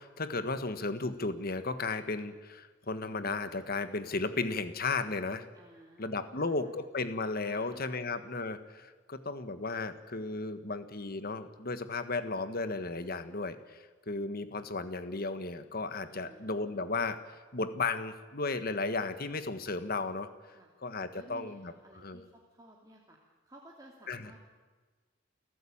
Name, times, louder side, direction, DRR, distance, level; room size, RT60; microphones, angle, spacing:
voice 1, 0.0-5.5 6.0-17.2 17.5-20.3 20.8-22.2 24.1-24.3, left 3 dB, 50° left, 10 dB, 1.6 m, -34 dB
voice 2, 5.5-6.7 7.4-8.0 16.1-16.5 20.5-20.7 21.1-23.2 23.5-24.4, right 1 dB, 20° right, -2 dB, 2.7 m, -55 dB
29.0 x 14.5 x 8.8 m, 1.4 s
head